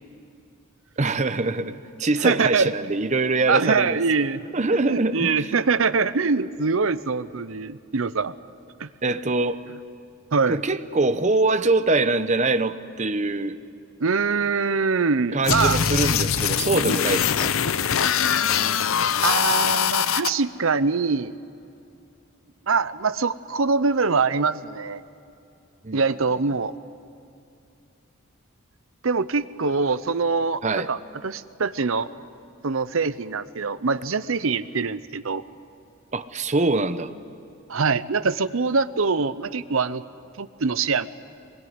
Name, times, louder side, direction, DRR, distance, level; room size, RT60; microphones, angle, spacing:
voice 1, 1.0-4.0 4.5-5.5 9.0-9.6 10.5-13.6 15.3-17.5 25.8-26.0 30.6-30.9 36.1-37.1, right 2 dB, 35° right, 11 dB, 0.8 m, -23 dB
voice 2, 2.2-2.7 3.5-4.4 4.9-8.3 8.8-8.9 10.3-10.6 14.0-15.8 19.2-21.3 22.7-25.0 25.9-26.7 29.0-32.1 32.6-35.4 37.7-40.0 40.4-41.1, right 4 dB, 70° right, 14 dB, 0.7 m, -23 dB
sound 1, 15.4-20.3, left 8 dB, 75° left, 0.7 m, -22 dB
23.0 x 22.0 x 9.6 m, 2.6 s
head